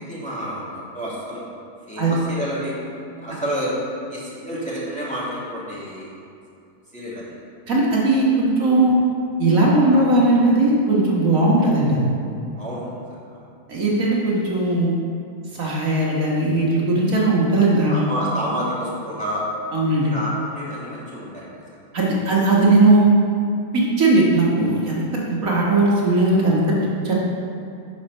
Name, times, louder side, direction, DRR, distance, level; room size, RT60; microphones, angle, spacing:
voice 1, 0.0-1.4 1.9-2.7 3.2-3.7 4.1-6.1 6.9-7.2 12.6-12.9 13.3-13.5 17.9-19.4 20.0-21.6, equal, 5° left, -8 dB, 1.9 m, -29 dB
voice 2, 7.7-9.0 9.4-12.0 13.7-14.9 15.5-18.0 19.7-20.1 21.9-23.1 23.7-25.0 25.3-26.6 27.0-27.1, right 2 dB, 60° right, -4 dB, 1.7 m, -18 dB
11.0 x 4.4 x 5.4 m, 2.5 s
omnidirectional pair, 1.7 m